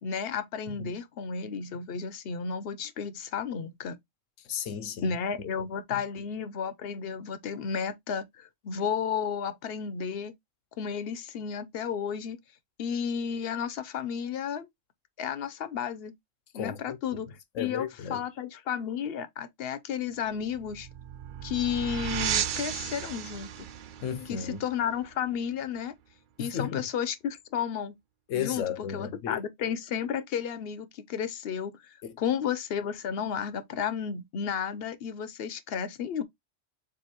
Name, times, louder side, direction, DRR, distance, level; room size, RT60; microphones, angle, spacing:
voice 1, 0.0-4.0 5.0-10.3 10.8-12.4 12.8-14.7 15.2-16.1 16.5-20.9 21.4-23.7 24.3-25.9 26.4-28.0 28.3-36.2, left 7 dB, 60° left, 0.8 m, -33 dB
voice 2, 4.4-5.1 5.9-6.0 16.5-17.0 17.5-18.2 24.0-24.6 26.4-26.9 28.3-29.4 32.0-32.2, left 8 dB, 90° left, 1.1 m, -34 dB
sound 1, 20.3-25.7, right 9 dB, 60° right, 0.5 m, -35 dB
7.1 x 2.6 x 2.8 m
omnidirectional pair, 1.3 m